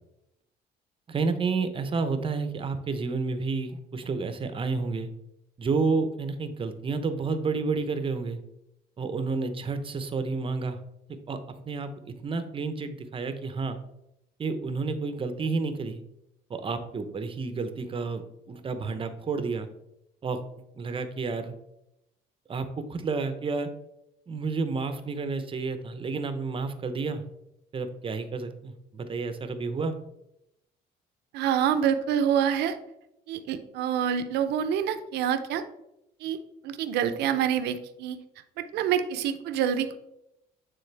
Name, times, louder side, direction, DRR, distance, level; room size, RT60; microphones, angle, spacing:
voice 1, 1.1-5.1 5.6-8.4 9.0-10.8 11.3-13.8 14.4-16.0 16.5-18.2 18.5-19.7 20.2-20.4 20.7-21.5 22.5-23.7 24.3-27.2 27.7-30.0, right 4 dB, 30° right, 9 dB, 0.8 m, -30 dB
voice 2, 31.3-32.8 33.3-35.6 36.2-36.4 36.6-38.2 38.6-40.0, right 9 dB, 80° right, 9 dB, 0.7 m, -26 dB
9.1 x 3.8 x 3.3 m, 0.85 s
cardioid pair, 110°, 17 cm